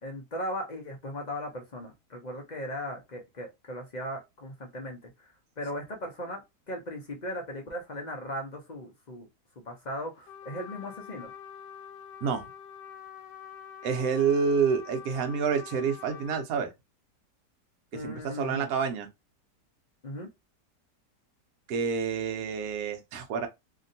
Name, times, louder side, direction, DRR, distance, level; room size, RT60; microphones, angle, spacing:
voice 1, 0.0-5.0 5.6-6.4 6.7-9.3 9.6-11.3 17.9-18.7 20.0-20.3, equal, 50° left, 0.5 m, -37 dB
Trumpet, 10.3-16.5, left 8 dB, 85° left, 1.4 m, -45 dB
voice 2, 13.8-16.7 18.0-19.1 21.7-23.5, right 6 dB, 65° right, 1.1 m, -28 dB
2.9 x 2.7 x 2.6 m
omnidirectional pair, 1.8 m